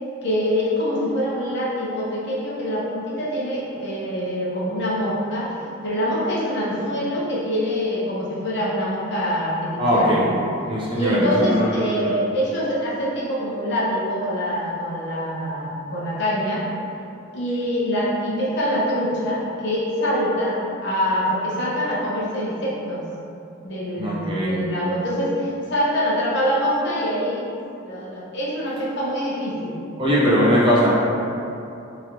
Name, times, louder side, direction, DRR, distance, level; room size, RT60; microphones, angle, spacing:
voice 1, 0.2-5.6 5.8-10.2 10.9-16.7 17.3-23.0 23.6-27.5 27.8-29.8, equal, 55° left, -7 dB, 0.8 m, -24 dB
voice 2, 9.8-10.2 10.7-12.2 24.0-24.6 30.0-30.9, equal, 25° right, -7 dB, 0.6 m, -20 dB
3.7 x 3.0 x 2.9 m, 2.8 s
head